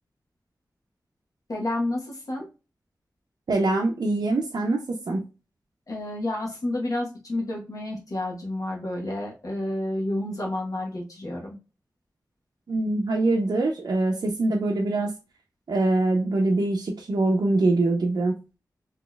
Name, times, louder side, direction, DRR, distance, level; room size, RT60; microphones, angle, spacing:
voice 1, 1.5-2.5 5.9-11.6, left 1 dB, 55° left, -1 dB, 1.1 m, -30 dB
voice 2, 3.5-5.2 12.7-15.1 15.7-18.4, right 2 dB, 70° right, 0 dB, 0.6 m, -23 dB
3.8 x 2.9 x 2.3 m, 0.31 s
wide cardioid pair, 75°, 7 cm